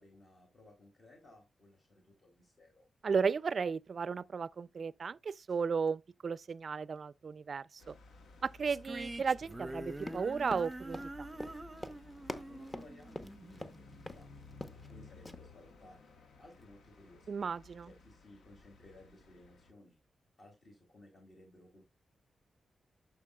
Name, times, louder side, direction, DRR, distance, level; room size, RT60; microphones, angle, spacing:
voice 1, 0.0-2.9 12.3-14.3 14.7-16.1 16.4-17.4 17.8-20.0 20.4-21.8, left 1 dB, 45° left, 2.7 m, -59 dB
voice 2, 3.0-7.9 8.4-11.0 17.3-17.9, right 5 dB, 50° right, 0.3 m, -34 dB
sound 1, 7.8-19.7, left 3 dB, 85° left, 1.1 m, -57 dB
sound 2, 8.7-14.0, right 1 dB, 20° right, 0.7 m, -45 dB
Run, 10.0-13.8 14.1-14.2 14.5-14.9 15.3-15.4, left 1 dB, 15° left, 0.8 m, -44 dB
11.0 x 6.0 x 2.3 m
cardioid pair, 95°, 0 cm